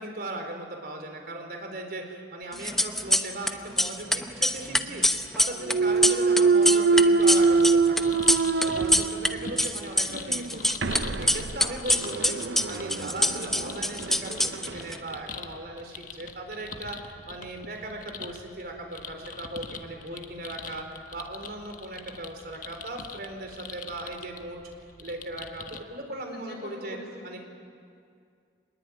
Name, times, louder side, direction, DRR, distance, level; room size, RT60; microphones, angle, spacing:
voice 1, 0.0-10.7 11.0-20.9 21.1-24.6 25.0-27.0 27.2-27.4, right 1 dB, 60° right, 4 dB, 4.2 m, -38 dB
sound 1, 2.6-3.5 3.8-9.3 9.6-11.0 11.3-15.0, left 1 dB, ahead, 0.9 m, -24 dB
voice 2, 5.6-5.9 19.7-20.3 26.3-27.4, left 1 dB, 65° left, 0 dB, 6.9 m, -45 dB
Thump thud, 5.6-9.7 10.1-14.8, right 4 dB, 85° right, 0.9 m, -24 dB
sound 2, 7.2-25.8, left 5 dB, 50° left, 1.5 m, -43 dB
26.0 x 21.0 x 9.2 m, 2.3 s
head